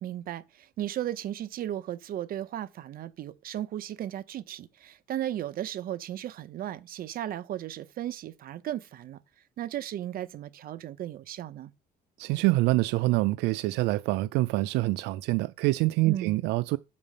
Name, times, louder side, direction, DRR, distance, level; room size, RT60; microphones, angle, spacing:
voice 1, 0.0-9.2 9.6-11.7 16.0-16.4, right 12 dB, 60° right, 0.9 m, -35 dB
voice 2, 12.2-16.8, right 19 dB, 90° right, 0.4 m, -25 dB
7.3 x 5.4 x 6.7 m
cardioid pair, 110°, 17 cm